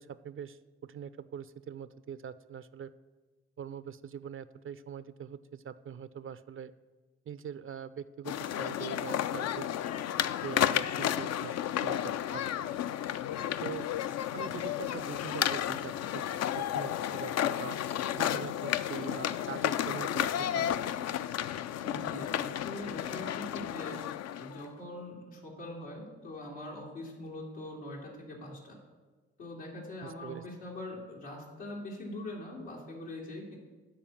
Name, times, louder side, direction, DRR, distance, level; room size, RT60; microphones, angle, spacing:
voice 1, 0.0-2.9 3.6-6.7 7.3-9.7 10.4-12.8 13.6-13.9 14.3-16.2 16.6-17.8 18.2-20.9 30.0-30.4, right 8 dB, 40° right, 15 dB, 0.4 m, -43 dB
sound 1, 8.2-24.7, left 10 dB, 50° left, 0.4 m, -32 dB
voice 2, 21.7-23.9 24.3-28.8 29.4-33.6, left 1 dB, 85° left, -4 dB, 2.3 m, -42 dB
10.5 x 4.4 x 7.0 m, 1.3 s
hypercardioid pair, 45°, 33 cm